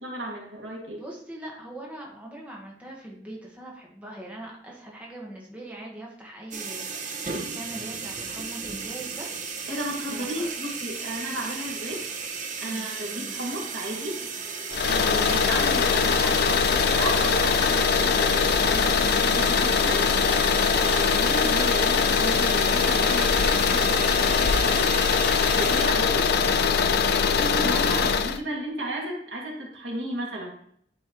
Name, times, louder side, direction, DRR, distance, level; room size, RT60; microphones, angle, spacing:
voice 1, 0.0-1.0 9.7-12.0 12.6-14.2 14.9-20.0 20.8-24.9 25.4-26.3 27.2-30.5, right 1 dB, 80° right, -2 dB, 2.1 m, -34 dB
voice 2, 0.9-9.3 9.6-9.7 10.1-10.5 12.6-13.4, right 1 dB, 10° right, -3 dB, 1.4 m, -41 dB
sound 1, 6.5-25.8, right 5 dB, 45° right, 0.8 m, -35 dB
sound 2, 14.7-28.4, left 5 dB, 60° left, 0.5 m, -22 dB
10.5 x 4.3 x 3.0 m, 0.64 s
head